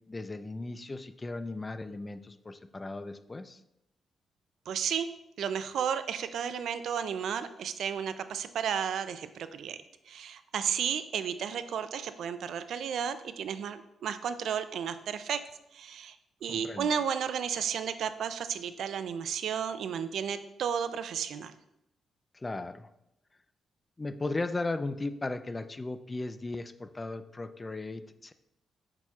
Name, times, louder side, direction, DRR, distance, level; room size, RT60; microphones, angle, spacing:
voice 1, 0.1-3.6 16.5-16.9 22.3-22.9 24.0-28.3, left 2 dB, 25° left, 11 dB, 0.4 m, -36 dB
voice 2, 4.7-5.1 5.4-9.8 10.1-15.4 15.7-16.2 16.4-21.5, right 8 dB, 75° right, 12 dB, 0.4 m, -33 dB
6.7 x 5.9 x 2.4 m, 0.86 s
cardioid pair, 75°, 0 cm